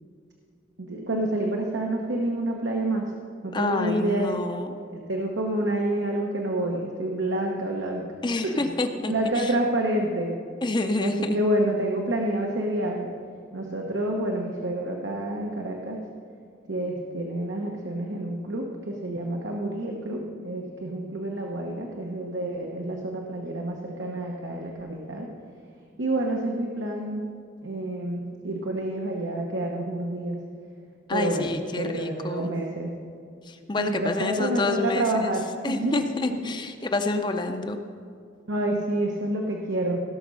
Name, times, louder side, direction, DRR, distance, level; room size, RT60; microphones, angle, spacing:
voice 1, 0.8-3.1 3.4-4.3 4.8-8.1 8.4-8.7 9.1-10.4 11.0-13.1 13.5-16.0 16.7-25.3 26.0-27.3 27.6-30.4 31.1-32.9 33.8-36.1 36.4-36.5 38.5-40.0, right 1 dB, 80° right, 0 dB, 1.1 m, -28 dB
voice 2, 3.5-4.7 8.2-9.5 10.6-11.4 31.1-32.5 33.5-35.3 35.6-37.8, left 2 dB, 25° left, 6 dB, 0.5 m, -28 dB
17.0 x 6.3 x 5.5 m, 2.4 s
head